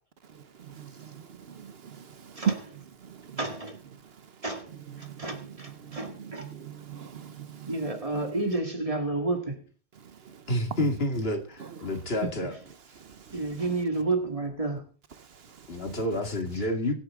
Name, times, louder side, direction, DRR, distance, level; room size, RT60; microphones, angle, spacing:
voice 1, 0.3-3.4 3.9-4.3 4.9-8.3 10.0-10.9 11.6-12.0 13.0-13.6 15.2-16.0, right 8 dB, 65° right, 1.0 m, -39 dB
voice 2, 3.4-3.8 4.4-4.7 5.0-6.5 7.7-9.6 13.3-14.8, right 2 dB, 30° right, 2.0 m, -30 dB
voice 3, 10.5-11.4 11.8-12.5 15.7-16.9, left 1 dB, 60° left, 2.4 m, -28 dB
23.5 x 8.1 x 3.7 m
omnidirectional pair, 1.1 m